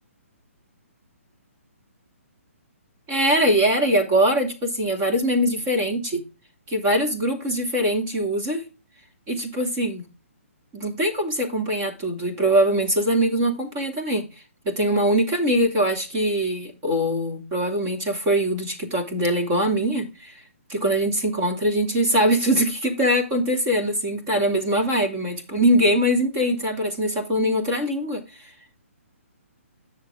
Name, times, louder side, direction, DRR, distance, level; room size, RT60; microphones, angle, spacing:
voice 1, 3.1-6.2 6.7-8.6 9.3-10.0 10.7-14.2 14.6-20.3 20.7-28.2, equal, 25° right, 2 dB, 2.8 m, -22 dB
10.5 x 6.9 x 3.7 m, 0.30 s
hypercardioid pair, 160°, 8 cm